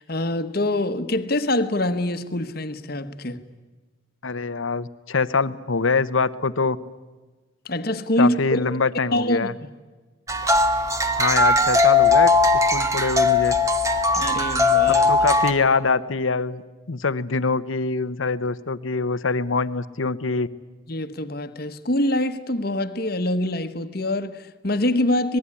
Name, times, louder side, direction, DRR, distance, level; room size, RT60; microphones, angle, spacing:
voice 1, 0.0-3.4 7.6-8.7 9.1-9.5 14.1-15.1 20.9-25.4, left 1 dB, 50° left, 1.3 m, -24 dB
voice 2, 4.2-6.8 8.2-9.5 11.2-13.5 14.9-16.6 16.9-20.5, left 4 dB, 85° left, 0.9 m, -24 dB
sound 1, 10.3-15.5, left 3 dB, 15° right, 1.3 m, -19 dB
26.0 x 19.5 x 9.8 m
head